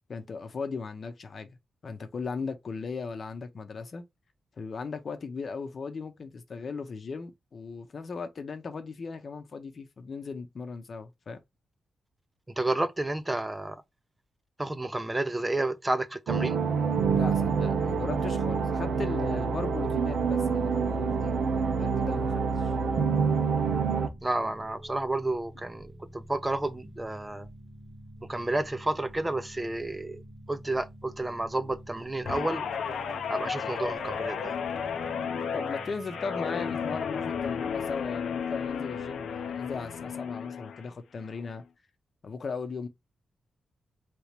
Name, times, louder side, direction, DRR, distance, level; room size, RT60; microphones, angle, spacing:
voice 1, 0.1-1.6 1.8-4.0 4.6-11.4 17.1-21.3 21.7-22.7 35.5-41.6 42.2-42.9, left 4 dB, 55° left, 0.8 m, -37 dB
voice 2, 12.6-13.8 14.6-16.6 24.2-27.5 28.2-30.2 30.5-32.7 33.3-34.6, right 2 dB, 20° right, 0.6 m, -31 dB
sound 1, 16.3-24.1, right 5 dB, 85° right, 0.6 m, -27 dB
sound 2, 20.1-37.5, right 1 dB, 65° right, 1.7 m, -48 dB
Guitar, 32.3-40.8 41.2-41.6, left 7 dB, 85° left, 0.6 m, -33 dB
3.4 x 2.9 x 3.3 m
cardioid pair, 70°, 0 cm